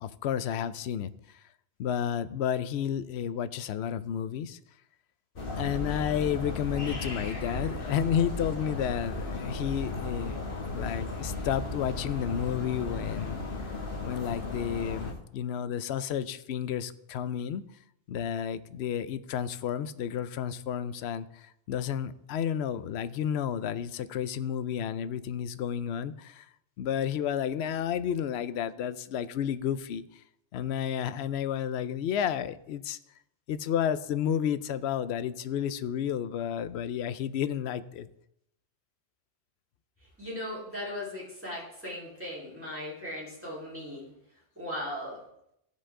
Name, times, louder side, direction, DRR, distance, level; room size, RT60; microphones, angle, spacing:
voice 1, 0.0-1.4 1.8-4.6 5.6-10.4 10.7-13.4 14.0-17.6 18.1-26.5 26.8-30.0 30.5-33.0 33.5-38.1, left 9 dB, 65° left, 14 dB, 0.8 m, -31 dB
sound 1, 5.4-15.1, left 2 dB, 45° left, 1.4 m, -35 dB
voice 2, 40.2-44.1 44.6-45.2, left 1 dB, 10° right, -7 dB, 3.9 m, -38 dB
16.0 x 5.3 x 3.7 m, 0.79 s
omnidirectional pair, 1.3 m